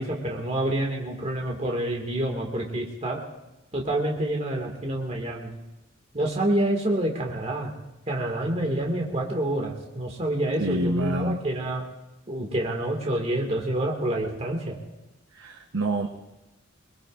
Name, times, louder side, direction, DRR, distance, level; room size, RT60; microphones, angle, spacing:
voice 1, 0.0-3.2 3.7-5.5 6.1-7.7 8.1-11.8 12.3-14.8, right 1 dB, 35° right, 0 dB, 2.0 m, -27 dB
voice 2, 10.6-11.4 15.3-16.1, right 1 dB, 90° right, 2 dB, 1.0 m, -27 dB
22.5 x 22.0 x 2.5 m, 0.99 s
head